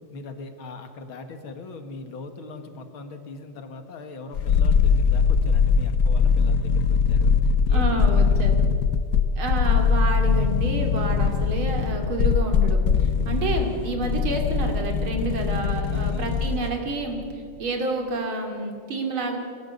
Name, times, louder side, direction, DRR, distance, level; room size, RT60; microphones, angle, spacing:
voice 1, 0.1-8.5 15.9-16.5, left 3 dB, 80° left, 7 dB, 2.5 m, -40 dB
sound 1, 4.3-16.7 17.0-17.1, left 5 dB, 60° left, 1.0 m, -21 dB
voice 2, 7.7-8.7 9.4-19.4, right 2 dB, 80° right, 3 dB, 3.5 m, -29 dB
22.5 x 16.5 x 8.2 m, 2.4 s
omnidirectional pair, 2.3 m